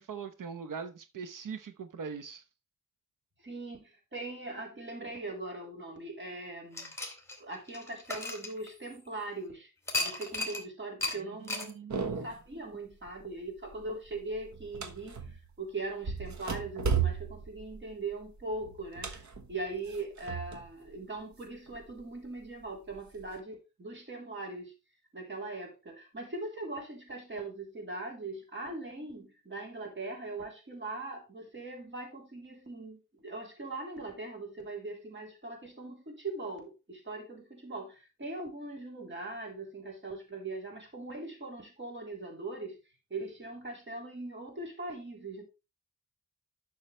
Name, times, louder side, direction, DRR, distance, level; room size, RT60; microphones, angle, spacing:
voice 1, 0.0-2.4 11.4-12.2, right 6 dB, 80° right, 0.9 m, -41 dB
voice 2, 3.4-6.9 7.4-9.7 10.0-24.7 25.1-42.8 43.1-45.4, right 2 dB, 35° right, 3.6 m, -41 dB
sound 1, 6.7-9.1 9.9-10.6 11.0-11.2 11.5-11.7, left 2 dB, 10° left, 2.7 m, -35 dB
sound 2, 11.9-12.5 12.9-13.3 13.6-15.5 16.0-20.7 21.0-22.0 22.6-23.4, right 6 dB, 65° right, 1.3 m, -35 dB
11.0 x 6.6 x 3.2 m
wide cardioid pair, 120°, 32 cm